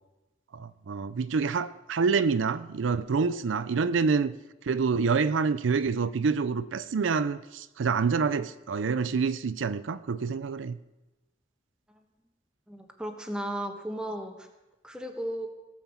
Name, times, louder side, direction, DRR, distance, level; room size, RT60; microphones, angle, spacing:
voice 1, 0.5-4.3 4.6-10.8, right 5 dB, 90° right, 0.5 m, -27 dB
voice 2, 12.7-14.5 14.8-15.5, right 1 dB, 5° right, 1.2 m, -35 dB
17.5 x 5.8 x 7.2 m
head